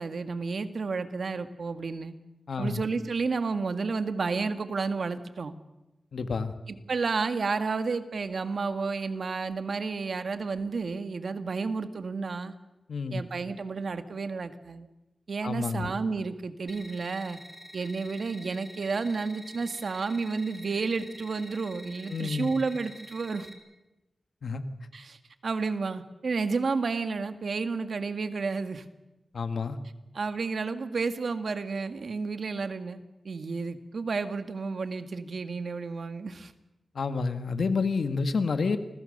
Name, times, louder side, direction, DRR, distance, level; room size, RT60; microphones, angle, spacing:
voice 1, 0.0-2.1 2.6-5.5 6.7-12.5 13.1-14.9 15.3-17.4 17.7-23.5 24.9-28.8 30.1-33.0 33.3-36.5, right 4 dB, 65° right, 9 dB, 1.8 m, -31 dB
voice 2, 2.5-2.8 6.1-6.5 12.9-13.2 15.4-15.9 22.1-22.5 24.4-24.6 29.3-29.8 37.0-38.8, left 4 dB, 80° left, 9 dB, 1.7 m, -29 dB
sound 1, 16.7-23.5, equal, 10° right, 3.8 m, -48 dB
29.0 x 22.0 x 6.7 m, 0.99 s
wide cardioid pair, 105°, 0 cm